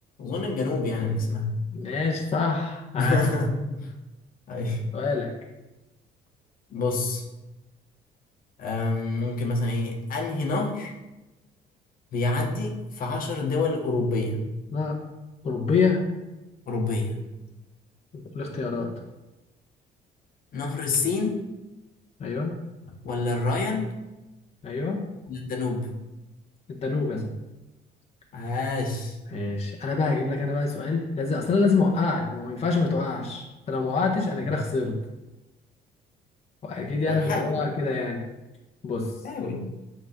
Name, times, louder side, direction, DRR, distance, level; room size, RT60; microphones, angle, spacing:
voice 1, 0.2-1.6 2.9-3.9 4.5-4.9 6.7-7.2 8.6-10.9 12.1-14.5 16.7-17.1 20.5-21.4 23.0-23.9 25.3-26.0 28.3-29.2 34.5-34.6 37.1-37.6 39.2-39.6, left 3 dB, 55° left, 1 dB, 1.7 m, -27 dB
voice 2, 1.7-3.2 4.9-5.3 14.7-15.0 15.4-16.0 18.1-18.9 22.2-22.5 24.6-25.0 26.7-27.3 29.3-35.0 36.6-38.2 38.8-39.1, left 4 dB, 40° left, -1 dB, 1.5 m, -26 dB
8.4 x 4.7 x 6.1 m, 1.0 s
cardioid pair, 110°, 17 cm